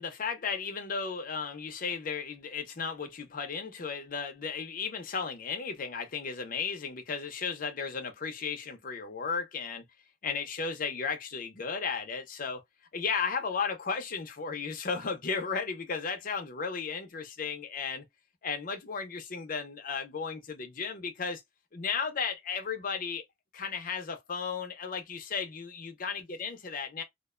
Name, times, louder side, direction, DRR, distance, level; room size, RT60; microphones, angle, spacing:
voice 1, 0.0-9.8 10.2-12.6 12.9-18.1 18.4-21.4 21.7-23.2 23.5-27.0, left 5 dB, 50° left, 0.6 m, -34 dB
2.5 x 2.1 x 2.3 m
head